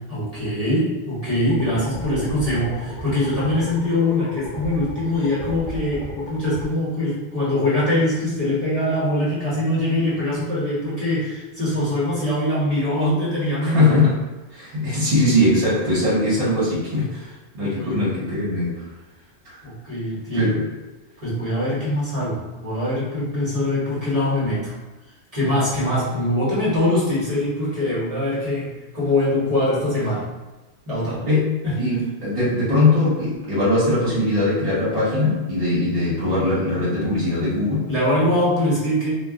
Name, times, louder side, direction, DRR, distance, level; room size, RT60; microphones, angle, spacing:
voice 1, 0.1-13.8 17.6-18.0 19.6-20.5 21.2-24.7 25.3-30.3 30.9-31.2 31.6-31.7 37.9-39.1, left 1 dB, 35° right, -9 dB, 1.1 m, -23 dB
sound 1, 1.5-6.7, equal, 5° left, 1.2 m, -35 dB
voice 2, 13.6-14.2 14.5-18.9 19.4-19.6 20.3-20.7 31.2-37.9, left 2 dB, 60° right, -9 dB, 1.1 m, -21 dB
2.3 x 2.2 x 3.5 m, 1.2 s
omnidirectional pair, 1.1 m